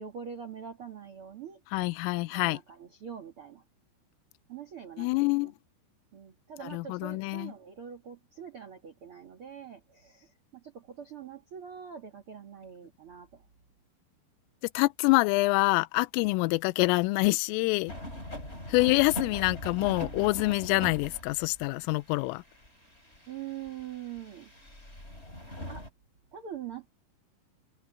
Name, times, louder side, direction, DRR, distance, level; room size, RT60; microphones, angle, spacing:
voice 1, 0.0-1.6 2.3-3.6 4.5-5.5 6.1-13.4 23.3-24.5 25.7-25.8 26.3-26.9, right 8 dB, 60° right, 1.4 m, -44 dB
voice 2, 1.7-2.6 5.0-5.5 6.6-7.5 14.7-17.9 18.7-22.4, left 24 dB, 85° left, 3.1 m, -26 dB
sound 1, 17.9-21.7 22.0-25.9, left 1 dB, 10° left, 7.6 m, -41 dB
open air
omnidirectional pair, 5.9 m